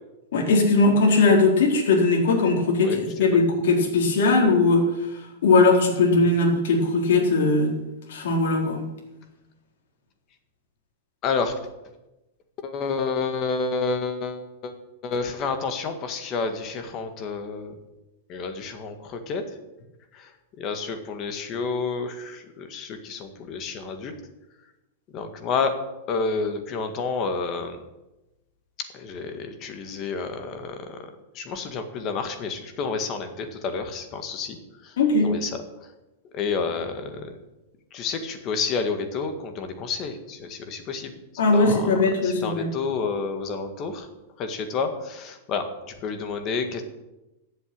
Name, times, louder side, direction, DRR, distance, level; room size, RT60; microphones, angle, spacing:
voice 1, 0.3-4.8 5.1-7.7 8.1-8.8 35.0-35.3 41.4-42.7, left 3 dB, 75° left, 0 dB, 4.0 m, -19 dB
voice 2, 11.2-11.5 12.6-14.8 15.0-17.7 18.3-19.6 20.1-20.3 20.6-24.1 25.1-25.8 26.1-27.8 28.9-31.1 31.3-35.0 35.2-35.9 36.3-37.3 37.9-41.1 41.5-44.1 44.4-45.7 46.0-46.8, left 4 dB, 30° left, 7 dB, 1.8 m, -30 dB
15.0 x 8.2 x 9.0 m, 0.99 s
supercardioid pair, 170°, 0 cm